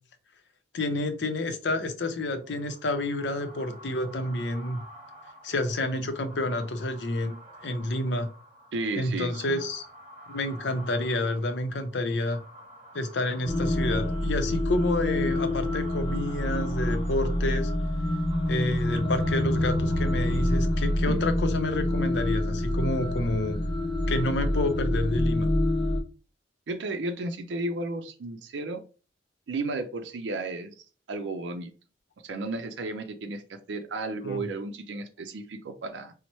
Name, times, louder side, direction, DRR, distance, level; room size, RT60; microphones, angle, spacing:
voice 1, 0.7-4.8 5.4-7.3 7.6-8.3 9.0-9.8 10.3-12.4 12.9-17.7 18.5-23.6 24.1-25.5 34.2-34.4, left 2 dB, 75° left, 8 dB, 0.6 m, -29 dB
sound 1, 2.4-21.3, equal, 35° right, 1.0 m, -50 dB
voice 2, 8.7-9.6 21.1-21.2 26.7-28.8 29.5-31.7 32.2-36.1, right 2 dB, 85° right, 6 dB, 0.4 m, -33 dB
sound 2, 13.4-26.0, left 1 dB, 30° left, 0.5 m, -27 dB
Bass guitar, 19.0-25.2, equal, 10° right, 0.7 m, -43 dB
3.0 x 2.1 x 4.1 m, 0.35 s
head